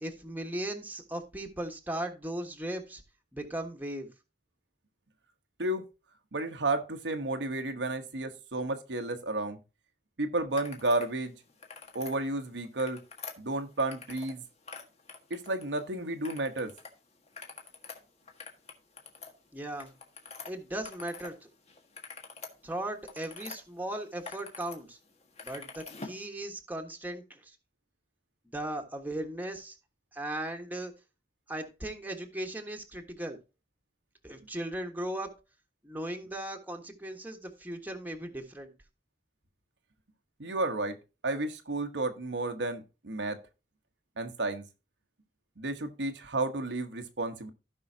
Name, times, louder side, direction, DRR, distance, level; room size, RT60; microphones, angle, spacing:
voice 1, 0.0-3.0 3.3-4.1 19.5-19.9 20.5-21.5 22.6-25.0 25.4-27.5 28.5-29.7 30.1-30.9 31.5-33.4 34.2-35.3 35.8-38.7, right 1 dB, 10° right, 1.4 m, -37 dB
voice 2, 6.3-9.6 10.2-11.4 11.9-13.0 13.4-14.4 15.3-16.7 40.4-41.0 41.2-43.4 44.2-44.6 45.6-47.5, right 2 dB, 90° right, 1.1 m, -32 dB
sound 1, 10.5-11.1 11.5-12.2 12.6-14.4 14.6-15.8 16.2-16.9 17.2-21.3 21.7-23.6 24.0-24.8 25.1-26.2, left 4 dB, 40° left, 1.6 m, -46 dB
15.5 x 5.5 x 2.8 m
head